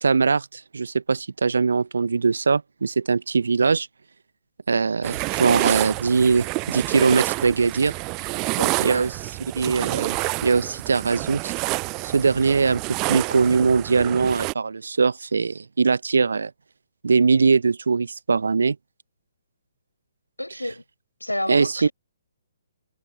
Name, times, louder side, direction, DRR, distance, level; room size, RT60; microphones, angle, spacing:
voice 1, 0.0-3.9 4.7-7.9 8.8-9.1 9.5-11.5 12.0-16.5 17.0-18.8 21.5-21.9, right 4 dB, 65° right, 0.7 m, -21 dB
sound 1, 5.0-14.5, right 29 dB, 25° right, 0.3 m, -28 dB
voice 2, 8.6-9.0 20.4-20.8 21.2-21.9, left 1 dB, 85° left, 6.6 m, -30 dB
figure-of-eight pair, 130°, 0 cm